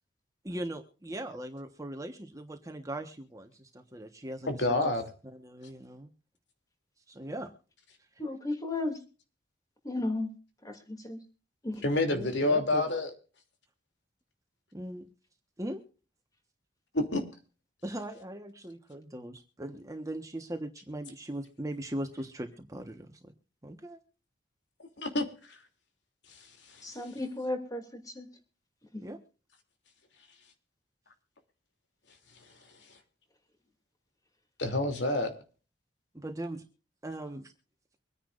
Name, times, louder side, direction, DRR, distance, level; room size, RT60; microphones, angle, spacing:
voice 1, 0.4-4.9 5.3-6.1 7.1-7.5 12.1-12.8 14.7-15.1 15.6-15.8 17.8-23.2 23.6-24.0 29.0-29.2 36.1-36.6 37.0-37.5, right 1 dB, 20° right, 6 dB, 1.3 m, -39 dB
voice 2, 4.5-5.0 11.8-13.1 16.9-17.2 25.0-25.3 34.6-35.3, left 2 dB, 85° left, 5 dB, 3.0 m, -27 dB
voice 3, 8.2-9.0 9.8-10.3 10.6-11.2 11.6-11.8 26.8-28.3 28.9-29.0, left 2 dB, 20° left, 5 dB, 2.8 m, -34 dB
24.5 x 10.0 x 2.6 m, 0.37 s
head